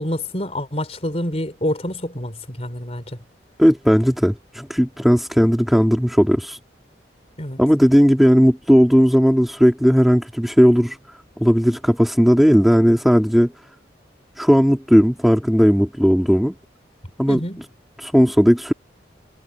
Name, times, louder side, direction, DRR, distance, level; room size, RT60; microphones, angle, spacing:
voice 1, 0.0-3.2 7.4-7.6 17.3-17.6, left 1 dB, 35° left, 4.5 m, -27 dB
voice 2, 3.6-6.6 7.6-11.0 11.4-13.5 14.4-16.5 17.2-17.4 18.0-18.7, equal, ahead, 3.4 m, -16 dB
head